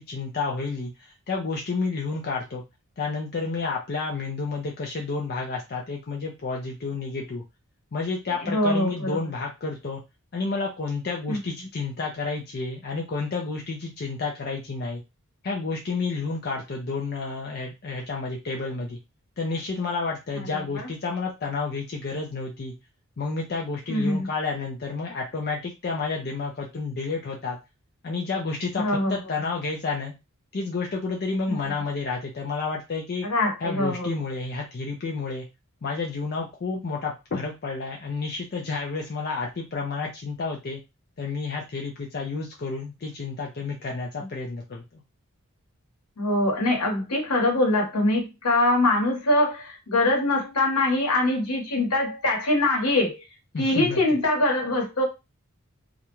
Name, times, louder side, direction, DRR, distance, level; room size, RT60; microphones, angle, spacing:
voice 1, 0.0-2.6 3.0-7.4 7.9-10.0 10.3-15.0 15.4-19.0 19.4-22.7 23.2-27.6 28.0-30.1 30.5-33.3 33.6-35.5 35.8-40.8 41.2-45.0 53.5-54.0, left 4 dB, 45° left, 0 dB, 0.5 m, -30 dB
voice 2, 8.4-9.2 11.3-11.4 20.5-20.6 23.9-24.3 28.8-29.2 33.2-34.1 46.2-53.1 53.6-55.0, left 2 dB, 80° left, 0 dB, 1.1 m, -23 dB
2.4 x 2.1 x 3.0 m, 0.24 s
head